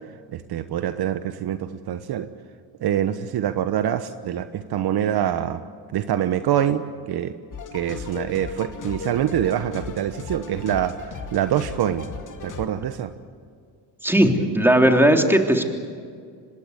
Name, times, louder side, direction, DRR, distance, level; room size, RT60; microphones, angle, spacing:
voice 1, 0.3-2.3 2.8-5.6 5.9-7.3 7.7-12.1 12.4-13.1, right 10 dB, 60° right, 10 dB, 1.2 m, -25 dB
sound 1, 7.5-12.7, left 5 dB, 45° left, 2.5 m, -36 dB
voice 2, 14.0-15.6, right 1 dB, 5° right, 3 dB, 3.3 m, -17 dB
25.5 x 20.5 x 8.1 m, 2.1 s
supercardioid pair, 75°, 44 cm